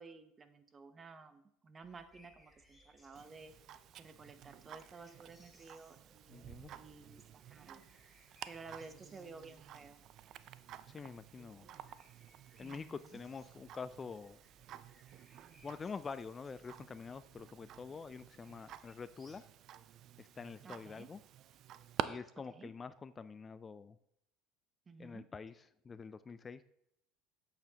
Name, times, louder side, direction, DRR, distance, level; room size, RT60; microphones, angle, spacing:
voice 1, 0.0-3.5 4.0-6.5 6.7-7.8 8.5-10.0 12.6-13.2 20.6-21.1 22.5-22.7 24.9-25.2, right 4 dB, 30° right, 10 dB, 0.8 m, -54 dB
sound 1, 1.8-19.4, equal, ahead, 2.6 m, -68 dB
Tick-tock, 3.2-22.0, right 11 dB, 55° right, 0.4 m, -50 dB
voice 2, 6.3-6.7 10.9-11.7 12.6-14.4 15.6-19.5 20.2-21.2 22.0-24.0 25.0-26.6, left 5 dB, 30° left, 14 dB, 0.3 m, -47 dB
8.0 x 6.9 x 2.9 m, 0.76 s
supercardioid pair, 90°, 0 cm